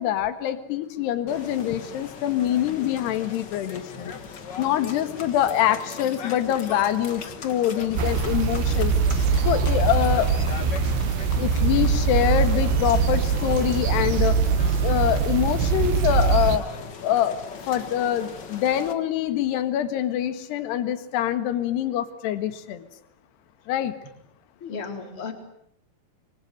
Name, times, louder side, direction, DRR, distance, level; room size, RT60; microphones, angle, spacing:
voice 1, 0.0-4.1 4.6-10.4 11.4-14.4 14.8-16.7 17.0-17.4 17.7-22.9 23.7-23.9, left 11 dB, 75° left, 11 dB, 3.7 m, -25 dB
sound 1, 1.3-18.9, left 5 dB, 55° left, 1.2 m, -39 dB
sound 2, 8.0-16.6, right 5 dB, 90° right, 3.7 m, -22 dB
voice 2, 24.6-25.3, left 4 dB, 35° left, 6 dB, 4.3 m, -34 dB
26.5 x 24.0 x 9.3 m, 0.70 s
omnidirectional pair, 4.9 m